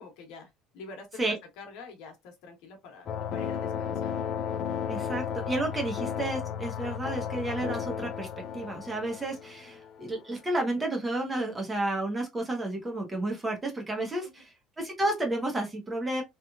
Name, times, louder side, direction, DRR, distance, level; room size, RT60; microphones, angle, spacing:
voice 1, 0.0-4.1 14.2-14.3, left 4 dB, 75° left, 1.0 m, -46 dB
sound 1, 3.1-10.3, left 8 dB, 45° left, 0.5 m, -34 dB
voice 2, 4.9-8.3 8.5-16.2, right 1 dB, 15° right, 0.8 m, -31 dB
3.0 x 2.4 x 2.3 m
cardioid pair, 150°, 0 cm